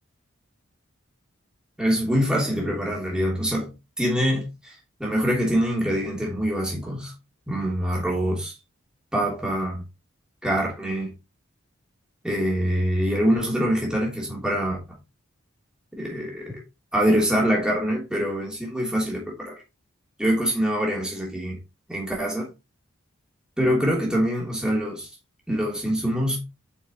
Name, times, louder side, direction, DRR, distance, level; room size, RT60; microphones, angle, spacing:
voice 1, 1.8-3.7 4.0-4.7 5.0-7.1 7.5-8.5 9.1-9.8 10.4-11.1 12.2-14.8 15.9-16.6 16.9-19.6 20.2-21.6 21.9-22.5 23.6-25.1 25.5-26.4, equal, 5° right, 3.1 m, -24 dB
8.9 x 5.7 x 3.0 m
head